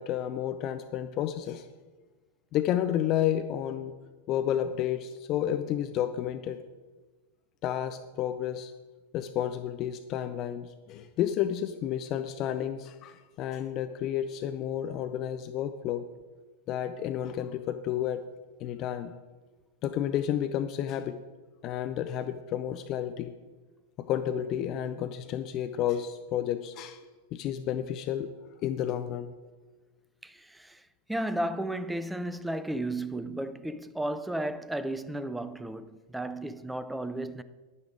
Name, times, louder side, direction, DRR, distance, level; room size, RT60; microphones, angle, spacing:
voice 1, 0.0-1.7 2.5-3.9 4.3-6.6 7.6-8.7 9.1-16.1 16.7-18.2 18.6-19.1 19.8-21.2 21.6-23.3 24.0-27.0 27.3-28.3 28.6-29.3, left 10 dB, 35° left, 0.6 m, -31 dB
voice 2, 30.2-30.8 31.1-37.4, right 1 dB, 5° right, 0.6 m, -34 dB
10.5 x 9.6 x 4.9 m
figure-of-eight pair, 90°, 0 cm